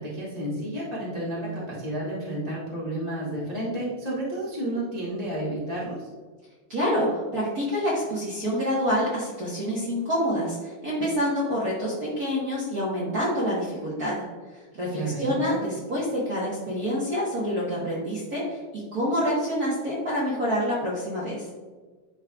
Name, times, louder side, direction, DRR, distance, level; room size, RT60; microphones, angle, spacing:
voice 1, 0.0-6.1 14.9-15.4, right 1 dB, 60° left, -7 dB, 0.4 m, -31 dB
voice 2, 6.7-14.2 14.7-21.5, equal, 55° right, -7 dB, 1.0 m, -27 dB
11.0 x 4.3 x 2.4 m, 1.4 s
omnidirectional pair, 3.6 m